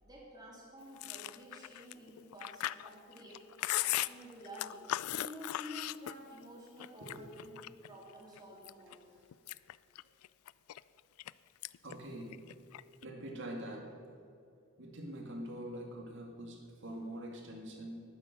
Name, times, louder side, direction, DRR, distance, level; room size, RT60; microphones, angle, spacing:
voice 1, 0.0-3.4 3.8-9.0, equal, 20° right, -4 dB, 3.1 m, -50 dB
Chewing mastication, 1.0-6.4 6.8-7.9 8.4-8.9 9.3-11.3 11.6-11.9 12.2-13.0, left 15 dB, 85° left, 0.3 m, -38 dB
voice 2, 11.8-12.3 13.0-13.9 14.8-18.0, right 1 dB, 60° right, 1 dB, 2.1 m, -44 dB
12.0 x 9.1 x 6.6 m, 2.4 s
head